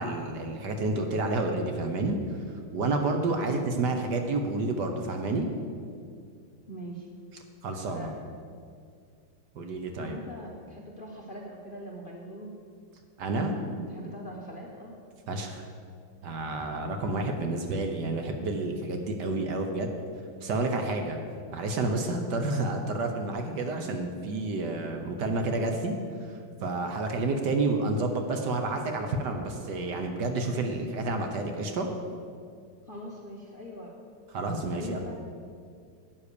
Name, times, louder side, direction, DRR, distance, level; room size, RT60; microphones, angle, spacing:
voice 1, 0.0-2.4 2.7-5.5 7.6-8.1 9.5-10.2 13.2-13.5 15.3-15.7 16.2-19.9 20.4-21.2 21.5-25.9 26.2-31.9 34.3-35.1, right 2 dB, 60° right, 4 dB, 1.4 m, -30 dB
voice 2, 3.3-3.6 6.7-7.1 7.9-8.1 10.0-12.6 13.6-14.9 17.1-17.2 32.8-34.0 34.7-35.1, equal, 40° left, -1 dB, 0.8 m, -42 dB
9.8 x 8.4 x 6.8 m, 2.2 s
omnidirectional pair, 2.3 m